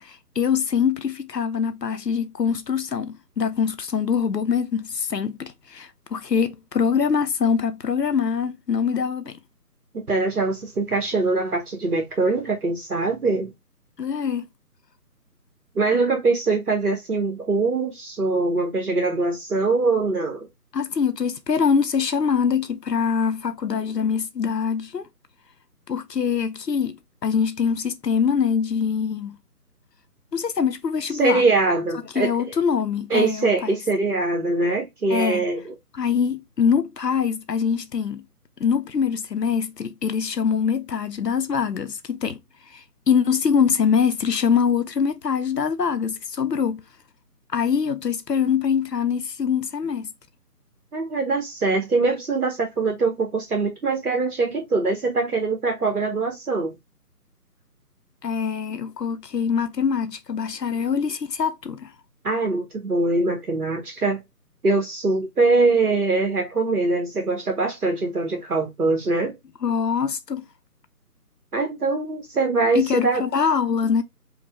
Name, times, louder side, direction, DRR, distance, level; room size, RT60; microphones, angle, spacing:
voice 1, 0.0-9.4 14.0-14.5 20.7-25.0 25.9-27.0 27.2-29.4 30.3-31.4 32.1-33.7 35.1-35.5 35.9-38.2 38.6-42.4 42.7-46.8 47.5-50.1 58.2-61.9 69.6-70.4 72.7-74.0, left 6 dB, 90° left, 0.7 m, -23 dB
voice 2, 9.9-13.5 15.7-20.5 31.1-32.3 33.1-35.7 50.9-56.7 62.2-64.2 64.6-69.3 71.5-73.2, right 3 dB, 65° right, 1.2 m, -23 dB
5.3 x 2.2 x 3.4 m
figure-of-eight pair, 150°, 47 cm